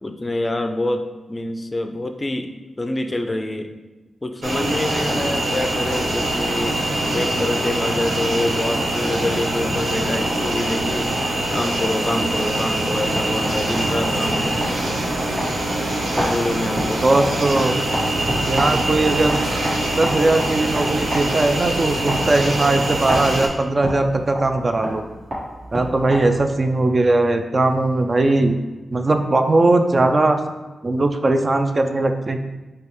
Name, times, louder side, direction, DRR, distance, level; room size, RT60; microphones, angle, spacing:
voice 1, 0.0-2.5 2.8-3.7 4.2-11.1 11.5-14.7 16.1-17.0, left 1 dB, 30° left, 6 dB, 0.4 m, -26 dB
sound 1, 4.4-23.5, right 1 dB, 80° right, 0.7 m, -23 dB
sound 2, 12.9-26.6, equal, 60° right, 1.4 m, -30 dB
voice 2, 17.0-17.7 18.5-19.4 20.0-25.0 25.7-28.6 28.9-30.4 30.8-32.4, right 2 dB, 40° right, 6 dB, 0.3 m, -19 dB
5.1 x 2.3 x 3.0 m, 1.2 s
cardioid pair, 55°, 0 cm